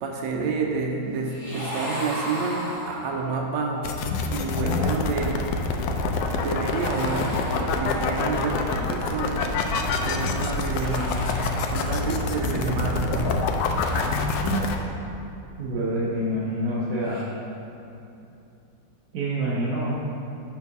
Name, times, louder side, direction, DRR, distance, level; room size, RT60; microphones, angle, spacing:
voice 1, 0.0-5.5 6.4-7.3 7.6-11.2 11.7-13.9 14.5-14.7, right 4 dB, 85° right, 1 dB, 1.3 m, -29 dB
sound 1, 1.2-3.4 6.6-8.3 10.7-12.2 13.6-14.9 17.0-17.2, equal, 10° left, 1.4 m, -36 dB
sound 2, 3.8-14.8, left 3 dB, 85° left, 1.2 m, -26 dB
voice 2, 15.6-17.2 19.1-20.0, right 1 dB, 65° right, -7 dB, 1.3 m, -26 dB
7.2 x 3.7 x 5.9 m, 2.7 s
omnidirectional pair, 1.9 m